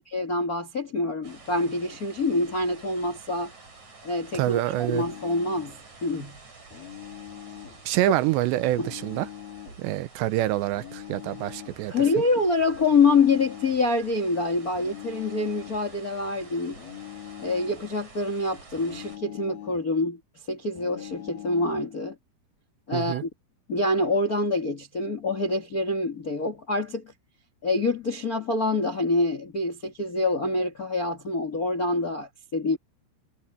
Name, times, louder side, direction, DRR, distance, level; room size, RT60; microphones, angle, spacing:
voice 1, 0.1-3.5 4.0-6.4 8.8-8.9 11.9-16.8 17.4-20.2 20.5-22.1 22.9-23.3 23.7-27.0 27.6-32.8, left 3 dB, 85° left, 0.8 m, -26 dB
sound 1, 1.2-19.2, right 3 dB, 40° right, 7.8 m, -49 dB
voice 2, 4.3-5.0 7.9-9.3 9.8-11.9 22.9-23.2, right 15 dB, 80° right, 2.8 m, -26 dB
sound 2, 4.7-5.8 6.7-7.8 8.7-9.9 10.7-11.8 12.7-13.9 14.7-15.9 16.8-17.9 18.8-19.9 20.8-21.9, left 11 dB, 55° left, 5.6 m, -42 dB
omnidirectional pair, 5.4 m